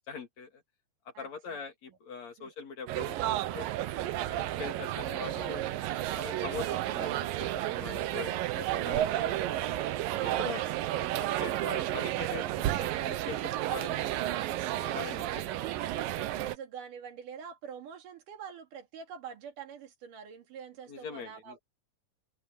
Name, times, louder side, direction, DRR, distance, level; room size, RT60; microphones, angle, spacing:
voice 1, 0.1-0.6 1.1-3.7 4.2-5.7 6.1-9.8 10.2-10.7 11.0-14.0 14.8-15.2 20.9-21.6, left 5 dB, 55° left, 4.1 m, -43 dB
voice 2, 1.1-2.0 2.4-2.5 8.9-9.2 14.8-21.6, right 7 dB, 70° right, 3.9 m, -46 dB
sound 1, 2.9-16.6, right 14 dB, 90° right, 2.7 m, -32 dB
open air
omnidirectional pair, 3.9 m